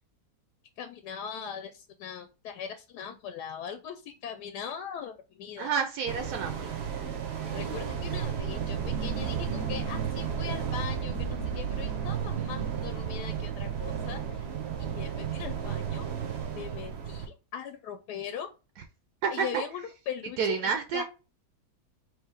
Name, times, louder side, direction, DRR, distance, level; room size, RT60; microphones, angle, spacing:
voice 1, 0.8-5.7 7.5-14.5 15.0-16.1 16.5-18.5 19.3-21.0, left 8 dB, 85° left, 1.1 m, -40 dB
voice 2, 5.6-6.8 19.2-19.6 20.4-21.0, right 6 dB, 80° right, 1.2 m, -29 dB
sound 1, 6.1-17.3, right 7 dB, 50° right, 0.9 m, -33 dB
3.4 x 3.1 x 4.6 m
omnidirectional pair, 1.7 m